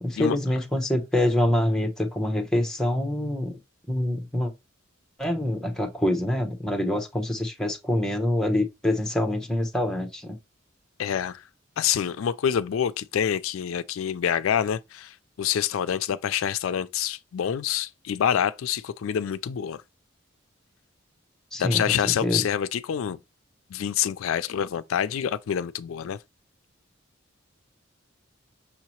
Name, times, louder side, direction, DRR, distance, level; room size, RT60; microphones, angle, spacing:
voice 1, 0.0-3.6 3.9-4.5 5.2-10.4 21.5-22.5, left 1 dB, 5° left, 0.8 m, -25 dB
voice 2, 11.0-11.4 11.8-19.8 21.6-23.2 23.7-26.2, left 9 dB, 80° left, 0.4 m, -27 dB
6.2 x 2.8 x 3.0 m
head